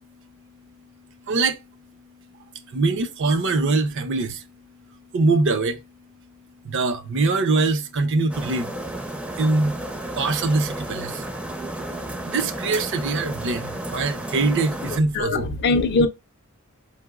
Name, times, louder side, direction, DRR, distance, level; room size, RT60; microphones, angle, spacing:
voice 1, 1.3-1.6 2.7-4.4 5.1-5.8 6.6-8.7 9.4-9.8 10.2-11.2 12.3-15.6, right 3 dB, 60° right, 0.5 m, -23 dB
sound 1, 8.3-15.0, right 1 dB, 5° right, 0.4 m, -32 dB
voice 2, 14.9-16.1, left 3 dB, 50° left, 0.5 m, -22 dB
5.2 x 2.0 x 2.2 m
head